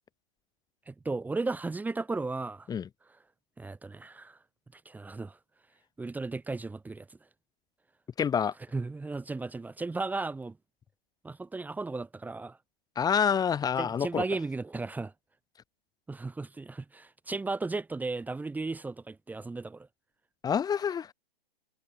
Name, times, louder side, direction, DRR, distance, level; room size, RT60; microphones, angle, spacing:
voice 1, 0.9-2.7 3.1-3.2 3.6-4.4 4.7-5.4 6.0-7.2 8.7-10.6 11.2-12.6 13.8-15.1 16.1-19.9, right 3 dB, 5° right, 3.6 m, -35 dB
voice 2, 8.2-8.5 13.0-14.2 20.4-21.1, left 7 dB, 10° left, 3.6 m, -27 dB
figure-of-eight pair, 125°, 31 cm